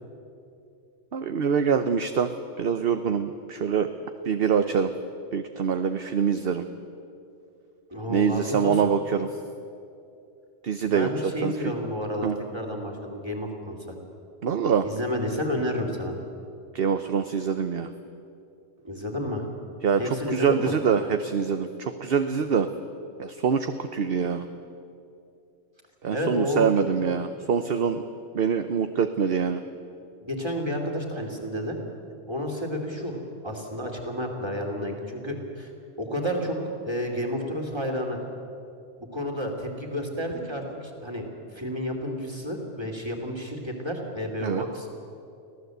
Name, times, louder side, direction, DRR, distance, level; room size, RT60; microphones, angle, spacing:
voice 1, 1.1-2.3 2.6-3.9 4.3-4.9 5.3-6.7 8.1-9.3 10.6-11.1 11.4-11.7 12.2-12.3 14.4-14.8 16.7-17.9 19.8-20.0 20.3-22.7 23.2-24.5 26.0-28.0 28.3-29.6 44.4-44.6, right 6 dB, 55° right, 8 dB, 1.0 m, -24 dB
voice 2, 7.9-8.9 10.8-13.8 14.8-16.1 18.8-19.5 20.0-20.7 26.1-27.0 27.7-27.8 30.2-31.8 32.3-35.7 36.0-36.6 36.8-38.2 39.1-44.9, equal, 20° right, 1 dB, 3.2 m, -31 dB
25.0 x 16.5 x 8.0 m, 2.6 s
omnidirectional pair, 1.3 m